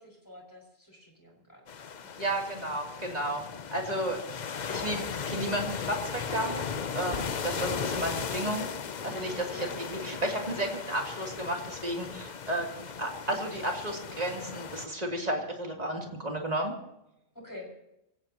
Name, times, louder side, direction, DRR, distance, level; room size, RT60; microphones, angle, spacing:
voice 1, 0.0-1.6 2.1-2.3 9.5-9.9 17.4-17.7, left 1 dB, 15° left, -1 dB, 5.9 m, -47 dB
sound 1, 1.7-14.9, left 6 dB, 45° left, 0.8 m, -37 dB
voice 2, 2.2-3.4 3.7-4.2 4.7-6.6 6.9-8.7 9.0-12.7 13.0-16.7, right 1 dB, 35° right, 0 dB, 3.3 m, -32 dB
25.0 x 17.0 x 3.0 m, 0.86 s
omnidirectional pair, 1.1 m